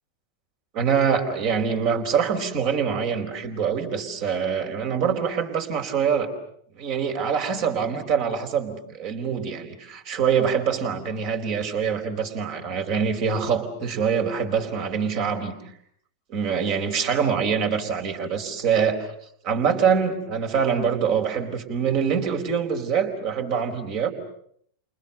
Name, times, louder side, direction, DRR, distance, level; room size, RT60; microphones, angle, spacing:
voice 1, 0.7-6.3 6.7-15.5 16.3-19.1 19.4-24.1, right 6 dB, 45° right, 6 dB, 4.4 m, -24 dB
30.0 x 29.0 x 6.8 m, 0.67 s
figure-of-eight pair, 90°, 0 cm